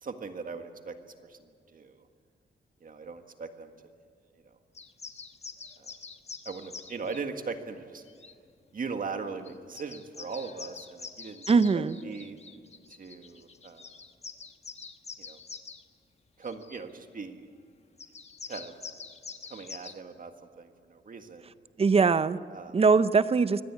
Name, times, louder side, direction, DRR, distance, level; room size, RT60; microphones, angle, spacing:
voice 1, 0.0-2.1 2.8-3.7 4.4-4.6 5.8-6.0 6.5-8.0 8.7-11.5 11.7-12.4 12.9-13.9 15.2-15.4 16.4-17.5 18.5-18.7 19.5-21.5 22.5-22.8, right 4 dB, 50° right, 6 dB, 1.7 m, -40 dB
sound 1, 4.7-7.2 8.1-8.3 9.2-9.3 9.5-15.8 16.4-16.8 18.0-19.9, left 5 dB, 35° left, 1.2 m, -45 dB
voice 2, 11.5-12.0 21.8-22.4 22.7-23.6, right 4 dB, 30° right, 14 dB, 0.6 m, -21 dB
24.5 x 17.5 x 8.4 m, 2.2 s
wide cardioid pair, 150°, 19 cm